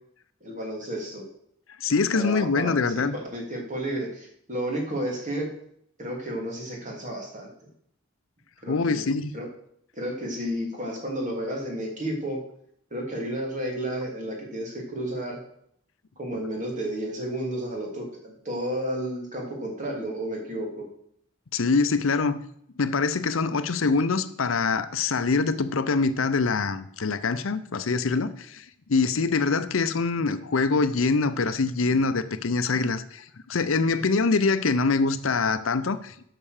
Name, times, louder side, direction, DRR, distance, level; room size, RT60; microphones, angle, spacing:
voice 1, 0.4-1.2 2.1-2.7 3.1-5.5 6.0-7.5 8.6-9.4 9.9-12.4 12.9-15.4 16.2-20.8, right 1 dB, 40° right, 2.9 m, -32 dB
voice 2, 1.8-3.1 8.7-9.3 21.5-22.4 22.8-36.1, left 4 dB, 85° left, 0.7 m, -24 dB
8.7 x 5.9 x 6.5 m
head